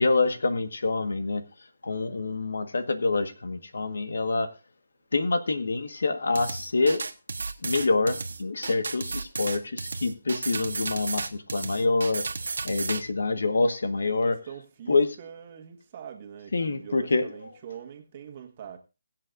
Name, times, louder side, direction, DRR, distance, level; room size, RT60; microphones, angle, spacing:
voice 1, 0.0-1.4 1.8-4.5 5.1-7.1 7.6-12.2 12.6-14.4 14.9-15.2 16.5-17.3, left 3 dB, 75° left, 1.6 m, -26 dB
sound 1, 6.4-13.0, right 4 dB, 75° right, 1.3 m, -33 dB
voice 2, 13.9-18.8, right 8 dB, 35° right, 1.6 m, -44 dB
21.5 x 7.5 x 2.6 m
hypercardioid pair, 160°, 0 cm